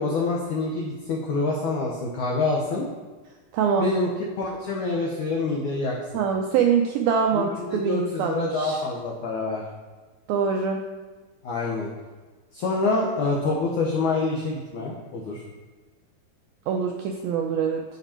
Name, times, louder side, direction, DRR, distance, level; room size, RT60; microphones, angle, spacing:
voice 1, 0.0-2.9 3.8-4.1 4.4-6.2 7.3-9.6 11.4-11.9 12.5-15.4, left 3 dB, 80° left, -2 dB, 1.7 m, -26 dB
voice 2, 3.5-3.9 6.1-8.8 10.3-10.8 16.7-17.8, right 6 dB, 85° right, 2 dB, 2.1 m, -24 dB
12.5 x 5.9 x 4.4 m, 1.3 s
omnidirectional pair, 5.0 m